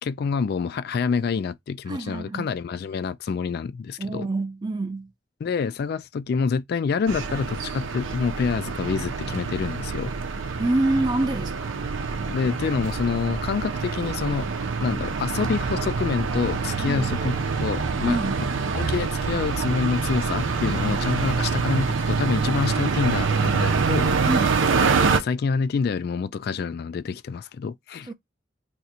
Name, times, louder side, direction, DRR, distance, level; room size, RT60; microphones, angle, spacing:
voice 1, 0.0-4.3 5.4-10.1 12.3-14.5 14.8-18.3 18.7-24.1 25.1-28.1, left 5 dB, 55° left, 0.3 m, -27 dB
voice 2, 1.9-2.5 4.0-5.1 10.6-11.8 16.8-17.1 18.0-18.4 20.7-21.0 24.3-24.6 28.1-28.2, right 2 dB, 20° right, 0.4 m, -26 dB
sound 1, 7.1-25.2, right 5 dB, 90° right, 0.5 m, -26 dB
2.7 x 2.4 x 4.1 m
head